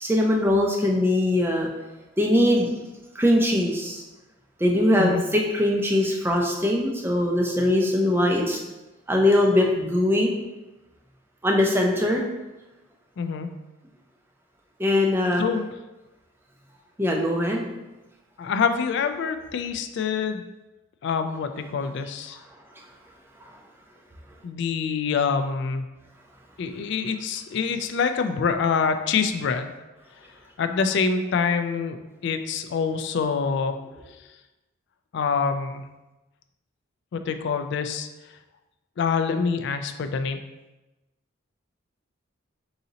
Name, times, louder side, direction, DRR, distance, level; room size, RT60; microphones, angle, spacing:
voice 1, 0.0-1.7 2.2-2.7 3.1-4.0 4.6-8.6 9.1-10.3 11.4-12.2 14.8-15.4 17.0-17.7 23.4-23.5, left 1 dB, 10° right, 0 dB, 0.5 m, -21 dB
voice 2, 13.2-13.5 15.4-15.6 18.4-20.4 21.0-22.4 24.4-25.8 26.6-29.7 30.6-33.8 35.1-35.8 37.1-38.1 39.0-40.4, left 5 dB, 55° left, 8 dB, 0.3 m, -26 dB
3.9 x 2.8 x 4.0 m, 1.1 s
head